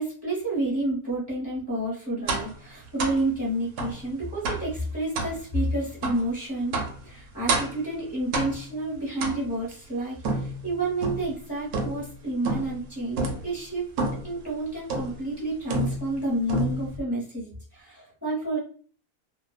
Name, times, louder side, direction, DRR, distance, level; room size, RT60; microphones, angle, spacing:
voice 1, 0.0-13.9 14.2-18.6, right 1 dB, 20° left, -7 dB, 0.8 m, -30 dB
sound 1, 2.3-2.6 3.0-3.2 3.8-4.0 4.4-4.7 5.1-5.4 6.0-6.2 6.7-7.0 7.5-7.8 8.3-8.7 9.2-9.7 10.2-11.3 11.7-12.1 12.4-12.8 13.2-13.5 14.0-14.3 14.9-15.2 15.7-16.2 16.5-17.0, right 2 dB, 90° right, 1.1 m, -29 dB
2.5 x 2.3 x 2.2 m, 0.43 s
omnidirectional pair, 1.6 m